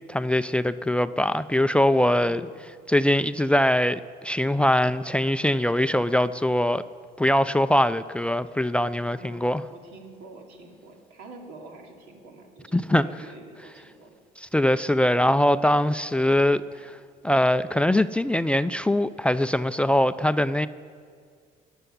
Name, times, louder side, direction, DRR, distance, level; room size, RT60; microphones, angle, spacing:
voice 1, 0.1-2.4 2.9-6.8 7.2-9.6 12.7-13.1 14.5-17.0 17.2-20.7, left 1 dB, 5° left, 14 dB, 0.4 m, -22 dB
voice 2, 2.2-2.7 9.0-14.2, right 2 dB, 85° right, 1 dB, 2.9 m, -46 dB
20.0 x 6.9 x 9.9 m, 2.1 s
cardioid pair, 110°, 17 cm